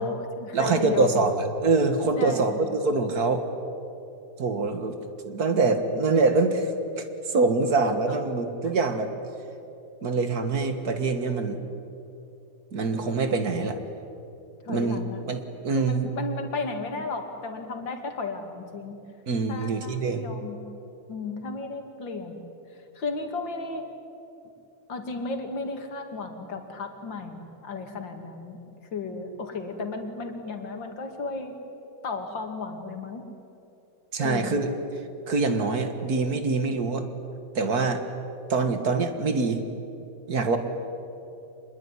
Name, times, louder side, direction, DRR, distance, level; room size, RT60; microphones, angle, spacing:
voice 1, 0.0-1.2 2.2-2.6 8.1-8.5 14.6-15.2 15.7-19.0 19.5-20.6 21.1-22.4 22.9-23.9 24.9-28.6 28.9-31.5 32.0-33.2 34.2-34.6 40.5-40.6, left 3 dB, 85° left, 5 dB, 3.1 m, -34 dB
voice 2, 0.5-3.5 4.4-5.0 5.3-6.7 7.0-9.1 10.0-11.6 12.7-13.8 14.7-15.0 15.3-16.1 19.3-20.3 34.1-34.7 35.3-37.1 37.6-38.0 38.5-39.6 40.3-40.6, right 3 dB, 55° right, 8 dB, 2.2 m, -24 dB
25.5 x 21.0 x 9.9 m, 2.8 s
omnidirectional pair, 2.0 m